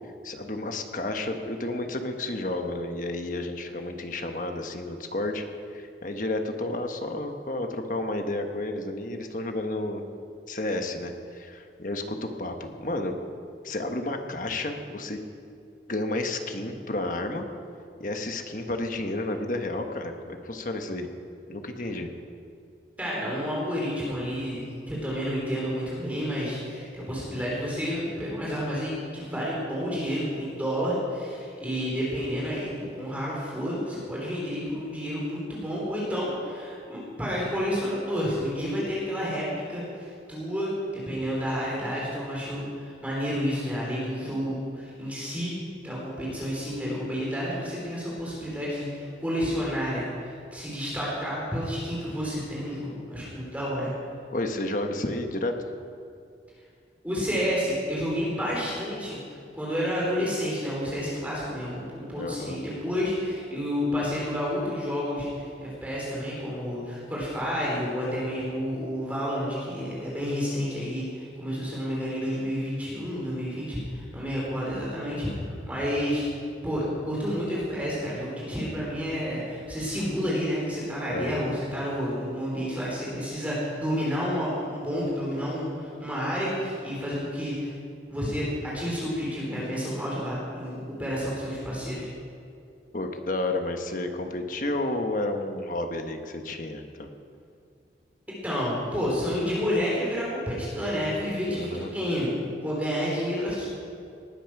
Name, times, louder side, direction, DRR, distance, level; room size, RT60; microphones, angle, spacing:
voice 1, 0.2-5.4 5.7-10.1 10.5-13.1 13.6-15.2 15.9-17.5 18.0-21.1 21.5-22.1 54.3-55.6 62.1-62.6 81.1-81.6 92.9-97.1 101.5-101.9, left 2 dB, 45° left, 5 dB, 1.3 m, -31 dB
voice 2, 23.0-45.5 45.8-53.9 57.0-59.2 59.5-76.3 76.6-87.7 88.1-92.1 98.4-102.3 102.6-103.7, equal, 10° right, -6 dB, 3.8 m, -30 dB
19.0 x 10.0 x 6.0 m, 2.4 s
head